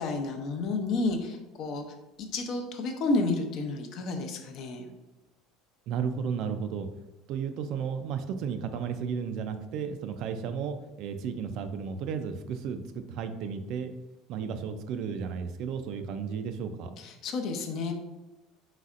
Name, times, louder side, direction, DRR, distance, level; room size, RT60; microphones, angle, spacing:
voice 1, 0.0-1.8 2.2-4.9 17.0-17.9, left 3 dB, 50° left, 4 dB, 0.6 m, -31 dB
voice 2, 5.9-6.9 7.3-13.9 14.3-16.9, right 6 dB, 55° right, 9 dB, 0.4 m, -33 dB
4.1 x 4.1 x 2.4 m, 1.0 s
cardioid pair, 145°, 0 cm